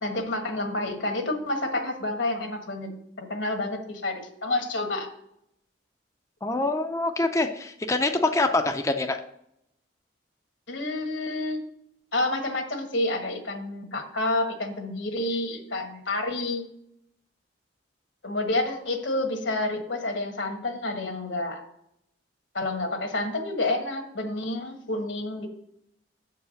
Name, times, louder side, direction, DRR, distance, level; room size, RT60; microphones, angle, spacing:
voice 1, 0.0-2.9 3.3-5.1 10.7-11.6 12.1-16.7 18.2-21.6 22.5-25.5, left 2 dB, 65° left, 5 dB, 1.4 m, -29 dB
voice 2, 6.4-9.2, left 2 dB, 15° left, 6 dB, 0.4 m, -25 dB
7.8 x 4.7 x 6.4 m, 0.76 s
head